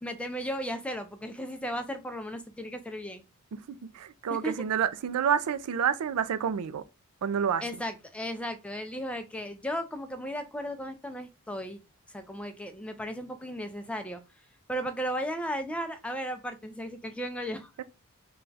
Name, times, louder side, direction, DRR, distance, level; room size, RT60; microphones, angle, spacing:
voice 1, 0.0-3.2 4.3-4.5 7.6-11.8 12.1-14.2 14.7-17.8, equal, 5° left, 0.3 m, -35 dB
voice 2, 3.5-6.8 7.2-7.6, right 8 dB, 85° right, 0.4 m, -29 dB
3.4 x 2.3 x 3.9 m
head